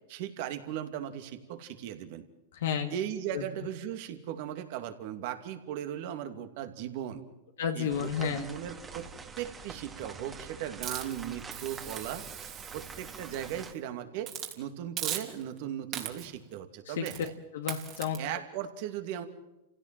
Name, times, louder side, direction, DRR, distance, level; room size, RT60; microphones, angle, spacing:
voice 1, 0.1-2.3 2.9-7.2 7.7-9.1 9.4-14.3 14.6-17.3 18.2-19.3, right 10 dB, 60° right, 7 dB, 2.5 m, -38 dB
voice 2, 2.5-2.9 3.3-3.5 7.6-8.5 16.9-17.3 17.5-18.2, left 8 dB, 75° left, 3 dB, 1.9 m, -31 dB
sound 1, 7.9-13.7, right 5 dB, 20° right, 2.0 m, -46 dB
Hiss, 10.8-13.7 14.2-14.6 15.0-15.6 15.9-16.4 17.1-17.3 17.7-18.2, right 10 dB, 40° right, 3.2 m, -39 dB
28.5 x 16.5 x 7.7 m, 0.96 s
hypercardioid pair, 110°, 0 cm